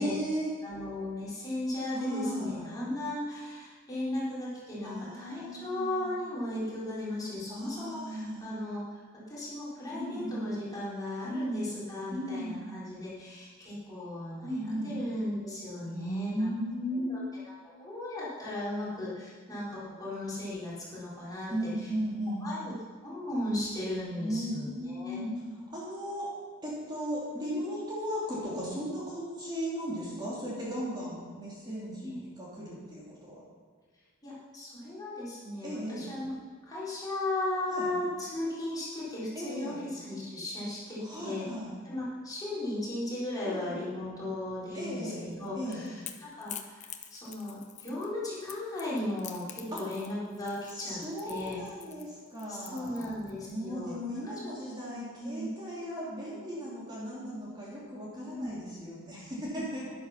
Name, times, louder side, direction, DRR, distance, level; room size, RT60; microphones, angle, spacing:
voice 1, 0.0-0.5 1.9-2.7 4.8-6.1 7.5-8.5 9.9-10.5 11.2-11.7 12.1-12.8 14.4-14.9 15.8-17.2 21.5-22.5 24.1-26.3 26.6-33.4 35.6-36.1 37.7-37.9 39.3-39.8 41.0-41.7 43.5-43.8 44.7-45.2 45.5-45.8 49.7-49.8 50.7-53.2 53.5-59.8, equal, 20° right, -7 dB, 3.4 m, -36 dB
voice 2, 0.6-9.0 9.3-16.5 17.1-17.2 17.8-21.7 22.4-22.7 23.0-25.2 32.0-32.2 34.2-36.4 36.7-41.5 41.8-51.6 52.5-54.3 55.2-55.5 58.2-58.5, left 1 dB, 15° left, -9 dB, 4.2 m, -36 dB
Crackle / Crack, 45.3-53.5, left 10 dB, 35° left, 0.8 m, -46 dB
12.5 x 11.0 x 5.9 m, 1.6 s
head